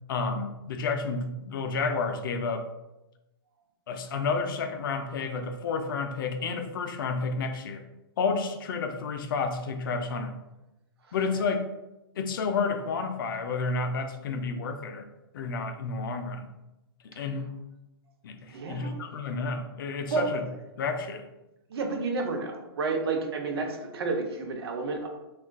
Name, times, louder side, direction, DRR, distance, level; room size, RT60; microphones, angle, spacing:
voice 1, 0.1-2.7 3.9-7.8 8.2-10.4 11.1-11.7 12.2-15.1 15.3-16.5 17.0-17.5 18.2-20.4 20.8-21.3, left 4 dB, 60° left, 7 dB, 0.4 m, -30 dB
voice 2, 18.5-18.9 20.0-20.2 21.7-25.1, right 4 dB, 75° right, 3 dB, 0.6 m, -30 dB
3.5 x 2.3 x 2.2 m, 0.96 s
hypercardioid pair, 165°, 13 cm